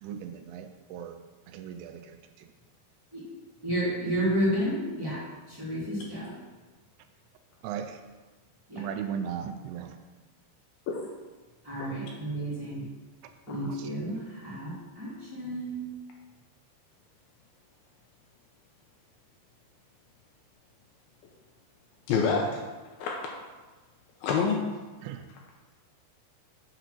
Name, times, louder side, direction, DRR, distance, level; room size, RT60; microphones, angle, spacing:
voice 1, 0.0-1.2 1.5-2.5 7.6-8.0 8.8-10.0 25.0-25.2, right 8 dB, 85° right, 7 dB, 2.6 m, -37 dB
voice 2, 3.6-5.2 5.5-6.3 8.7-8.8 11.6-12.8 13.5-15.9, right 1 dB, 10° right, -9 dB, 1.6 m, -31 dB
voice 3, 22.1-22.6 23.0-23.1 24.2-24.6, left 5 dB, 80° left, 0 dB, 2.3 m, -26 dB
7.9 x 4.3 x 6.1 m, 1.3 s
omnidirectional pair, 4.9 m